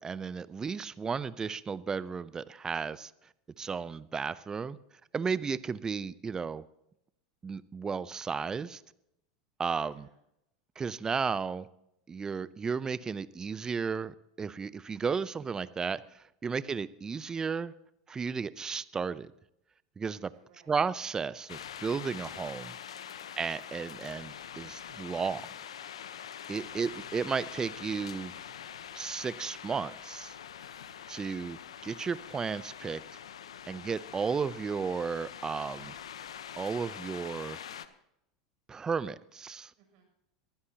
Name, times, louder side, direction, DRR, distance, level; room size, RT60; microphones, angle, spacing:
voice 1, 0.0-3.1 3.6-4.8 5.1-6.6 7.4-8.8 9.6-10.1 10.8-11.7 12.1-17.7 18.1-19.3 20.0-20.3 20.7-23.1 23.4-25.5 26.5-28.3 28.9-30.4 31.1-33.1 33.7-35.9 36.6-37.6 38.7-39.7, right 5 dB, 20° right, 18 dB, 0.7 m, -34 dB
voice 2, 5.0-5.3 9.8-10.2 20.3-20.8 23.1-23.4 26.7-26.8 31.1-31.2 39.8-40.0, right 7 dB, 60° right, 2 dB, 7.3 m, -65 dB
sound 1, 21.5-37.9, left 9 dB, 85° left, 1.0 m, -44 dB
22.5 x 15.5 x 2.9 m, 0.80 s
hypercardioid pair, 95°, 3 cm